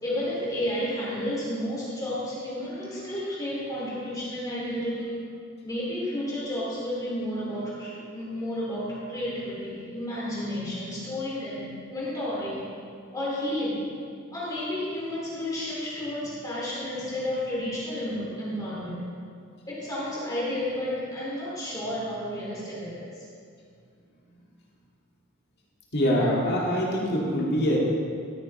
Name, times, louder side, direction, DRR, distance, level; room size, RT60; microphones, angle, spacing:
voice 1, 0.0-5.1 5.6-12.6 13.1-13.8 14.3-19.0 19.7-23.1, left 1 dB, 20° left, -7 dB, 2.6 m, -31 dB
voice 2, 25.9-27.8, equal, 55° left, -4 dB, 2.2 m, -24 dB
13.5 x 9.0 x 3.3 m, 2.3 s
head